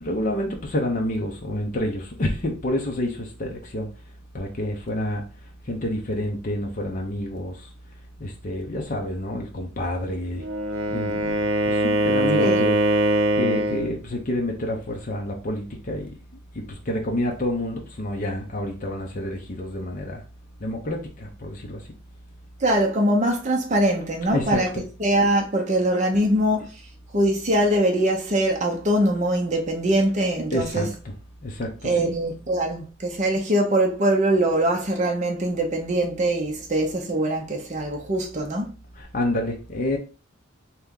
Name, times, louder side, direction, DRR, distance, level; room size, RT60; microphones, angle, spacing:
voice 1, 0.0-3.9 4.3-5.2 5.7-7.7 8.2-10.5 10.9-12.7 13.4-16.2 16.5-20.2 20.6-21.8 24.3-24.8 30.5-30.9 31.4-32.2 39.0-40.0, left 1 dB, 40° left, 0.7 m, -28 dB
Wind instrument woodwind instrument, 10.4-13.9, right 1 dB, 75° right, 0.8 m, -22 dB
voice 2, 22.6-24.7 25.0-26.6 27.1-30.9 31.8-38.7, right 1 dB, 35° right, 0.7 m, -22 dB
3.3 x 3.0 x 3.7 m
head